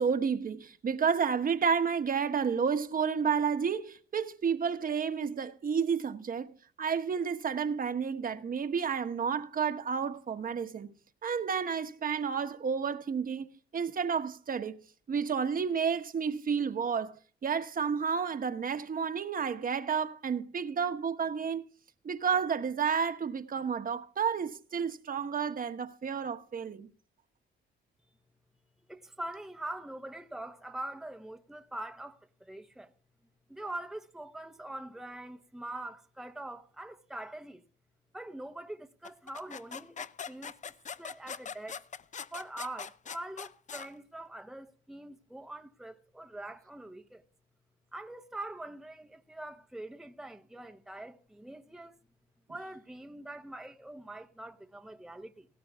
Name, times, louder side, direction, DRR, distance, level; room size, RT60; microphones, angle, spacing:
voice 1, 0.0-6.5 6.8-10.9 11.2-13.5 13.7-14.8 15.1-21.6 22.0-26.9, right 6 dB, 45° right, 1.2 m, -31 dB
voice 2, 28.9-32.9 33.5-37.7 38.1-40.7 41.0-41.8 42.3-47.2 47.9-52.0 52.5-55.5, right 1 dB, ahead, 0.9 m, -43 dB
sound 1, 39.0-43.9, left 6 dB, 40° left, 0.7 m, -42 dB
18.0 x 16.5 x 2.4 m
cardioid pair, 90°, 20 cm